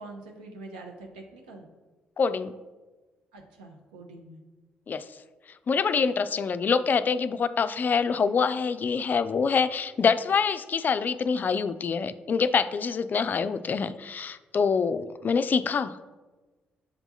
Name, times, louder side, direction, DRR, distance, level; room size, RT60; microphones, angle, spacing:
voice 1, 0.0-1.6 3.3-4.4, right 2 dB, 80° right, 1 dB, 0.8 m, -44 dB
voice 2, 2.2-2.5 4.9-5.1 5.7-16.0, left 5 dB, 40° left, 12 dB, 0.3 m, -25 dB
7.3 x 3.4 x 4.1 m, 1.2 s
figure-of-eight pair, 40°, 5 cm